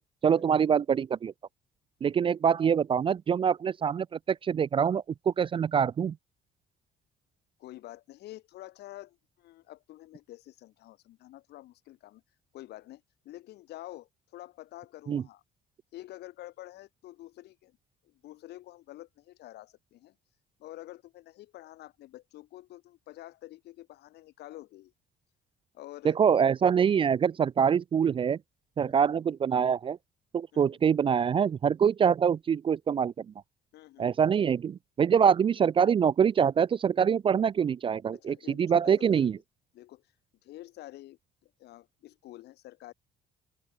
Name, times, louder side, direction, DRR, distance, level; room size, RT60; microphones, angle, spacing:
voice 1, 0.2-1.3 2.0-6.2 15.1-15.2 26.0-28.4 28.8-30.0 30.3-33.3 34.0-39.4, right 7 dB, 30° right, 0.4 m, -25 dB
voice 2, 7.6-12.2 12.5-15.4 15.9-17.8 18.0-20.2 20.6-24.9 25.7-26.2 28.8-29.0 30.5-30.7 33.7-34.1 38.1-39.3 39.7-40.0 40.4-42.9, left 15 dB, 75° left, 7.9 m, -48 dB
open air
cardioid pair, 110°, 17 cm